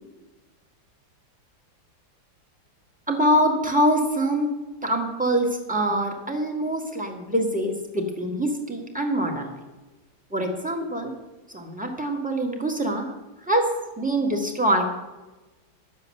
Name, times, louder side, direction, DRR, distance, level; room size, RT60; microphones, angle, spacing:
voice 1, 3.1-4.5 4.8-9.5 10.3-11.1 11.5-13.1 13.5-13.7 14.0-14.8, right 1 dB, 5° right, 2 dB, 1.5 m, -24 dB
12.0 x 8.1 x 6.6 m, 1.2 s
omnidirectional pair, 2.1 m